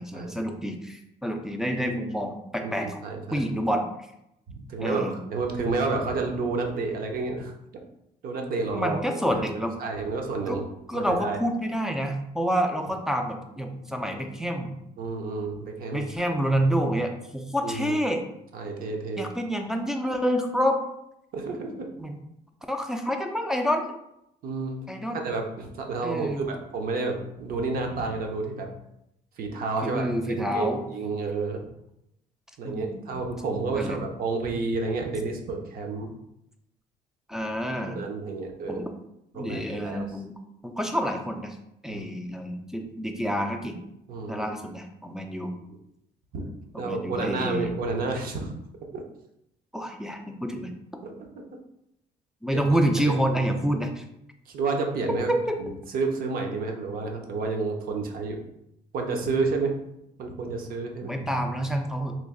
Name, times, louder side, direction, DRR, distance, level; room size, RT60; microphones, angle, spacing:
voice 1, 0.0-3.0 3.3-3.8 4.8-5.2 8.7-9.7 10.5-10.6 10.9-14.7 15.9-18.2 19.2-20.8 22.0-22.2 22.7-23.9 24.9-25.2 26.0-26.5 29.8-30.8 32.6-33.1 33.7-34.0 37.3-38.0 38.7-38.9 39.3-40.3 40.6-41.6 41.8-43.8 44.3-45.5 46.7-47.7 49.7-51.0 52.4-54.0 55.3-55.6 61.0-62.1, equal, 5° right, 3 dB, 0.4 m, -28 dB
voice 2, 2.6-3.4 4.5-7.5 8.2-9.0 9.3-9.4 9.8-10.6 10.9-11.4 15.0-16.1 17.6-18.0 18.5-19.2 21.3-21.9 24.4-24.9 25.2-28.7 29.4-30.1 30.4-31.7 32.6-36.1 37.9-38.9 39.3-40.1 41.9-42.0 44.1-44.5 46.3-46.5 46.8-48.5 48.9-49.0 51.0-51.6 52.5-52.8 53.0-53.1 54.5-55.3 55.6-58.4 58.9-59.7 60.2-61.2, right 3 dB, 60° right, 3 dB, 0.6 m, -30 dB
3.1 x 2.4 x 3.6 m, 0.82 s
cardioid pair, 110°, 17 cm